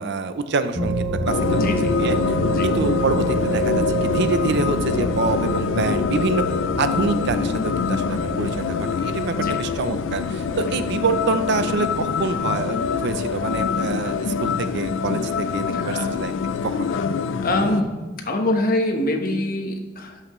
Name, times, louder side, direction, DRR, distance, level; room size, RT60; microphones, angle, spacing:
voice 1, 0.0-2.1 2.6-6.4 6.8-16.3 16.6-17.0, right 4 dB, 60° right, 10 dB, 0.5 m, -26 dB
sound 1, 0.7-15.8, right 1 dB, 80° right, 2.8 m, -29 dB
sound 2, 1.3-17.8, left 6 dB, 70° left, 0.4 m, -25 dB
voice 2, 1.6-1.9 2.5-2.7 9.4-9.6 15.7-16.1 17.4-17.9 18.2-20.2, left 1 dB, 45° left, 3 dB, 1.0 m, -24 dB
12.0 x 5.7 x 3.1 m, 1.2 s
head